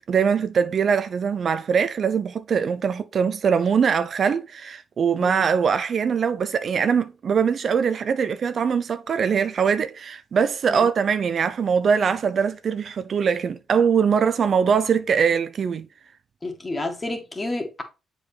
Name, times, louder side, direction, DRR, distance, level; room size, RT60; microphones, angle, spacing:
voice 1, 0.1-15.9, right 6 dB, 50° right, 0.5 m, -22 dB
voice 2, 16.4-17.8, left 2 dB, 25° left, 1.8 m, -30 dB
7.3 x 4.9 x 3.3 m
cardioid pair, 90°, 0 cm